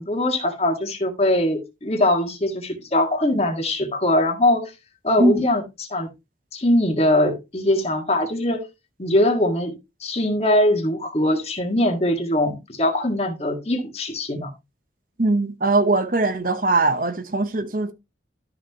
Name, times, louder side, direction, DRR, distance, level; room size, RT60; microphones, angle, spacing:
voice 1, 0.0-4.7 5.0-6.1 6.5-8.7 9.0-9.8 10.0-14.5, left 1 dB, 35° left, 1.8 m, -21 dB
voice 2, 15.2-17.9, right 2 dB, 50° right, 1.0 m, -20 dB
12.5 x 5.8 x 3.0 m
head